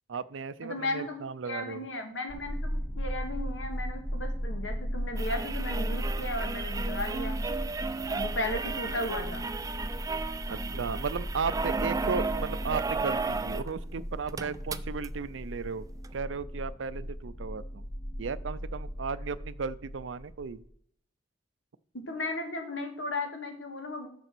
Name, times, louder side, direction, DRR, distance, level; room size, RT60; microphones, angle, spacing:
voice 1, 0.1-1.8 10.5-15.8 16.1-17.8 18.2-20.6, right 5 dB, 80° right, 17 dB, 0.5 m, -35 dB
voice 2, 0.6-7.4 8.0-9.5 21.9-24.1, left 1 dB, 90° left, 4 dB, 1.9 m, -35 dB
sound 1, 2.3-20.7, equal, 55° left, 3.6 m, -36 dB
sound 2, 5.2-13.7 14.0-14.1 14.3-15.1 16.0-16.1, right 4 dB, 20° right, 0.4 m, -34 dB
6.8 x 6.7 x 6.1 m, 0.67 s
head